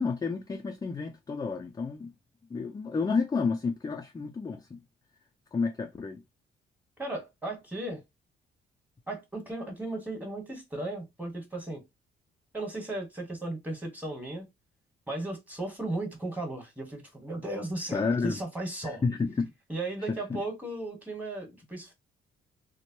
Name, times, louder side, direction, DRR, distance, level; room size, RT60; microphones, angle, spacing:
voice 1, 0.0-2.1 2.5-4.8 5.5-6.2 17.9-18.4 19.0-19.5 20.0-20.4, left 4 dB, 20° left, 0.4 m, -30 dB
voice 2, 7.0-8.0 9.1-11.8 12.5-14.5 15.1-19.0 19.7-21.9, right 2 dB, 10° right, 1.5 m, -36 dB
2.9 x 2.2 x 2.7 m
cardioid pair, 90°, 20 cm